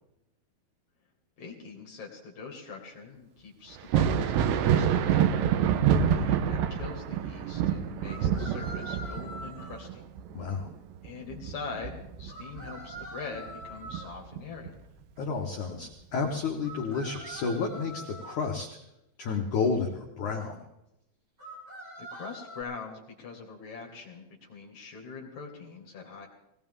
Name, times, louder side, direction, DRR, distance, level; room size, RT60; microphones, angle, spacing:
voice 1, 1.4-5.3 6.1-10.0 11.0-14.7 22.1-26.3, left 5 dB, 50° left, -1 dB, 2.4 m, -43 dB
Thunder, 3.8-13.1 13.5-14.7 16.3-16.4 17.2-17.3, right 8 dB, 75° right, 2.8 m, -27 dB
sound 1, 5.1-5.2 8.0-9.9 12.3-14.1 16.6-18.5 21.4-22.6, right 1 dB, 20° right, 6.2 m, -44 dB
voice 2, 5.9-6.3 10.3-10.7 15.2-18.7 19.2-20.6, left 5 dB, 90° left, 2 dB, 1.6 m, -31 dB
20.0 x 18.5 x 3.6 m, 0.85 s
omnidirectional pair, 5.5 m